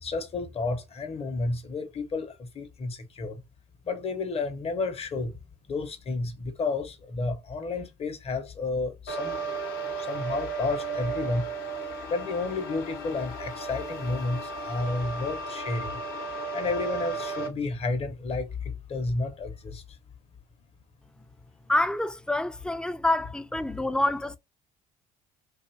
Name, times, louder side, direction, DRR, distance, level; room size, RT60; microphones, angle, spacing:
voice 1, 0.0-3.4 3.9-5.4 5.7-9.4 10.1-11.5 12.1-16.0 16.5-18.5 18.9-19.8, left 3 dB, 40° left, 0.7 m, -31 dB
sound 1, 9.1-17.5, right 4 dB, 75° left, 0.9 m, -34 dB
voice 2, 21.7-24.4, left 1 dB, 5° left, 0.3 m, -27 dB
2.6 x 2.4 x 2.8 m
supercardioid pair, 80°, 16 cm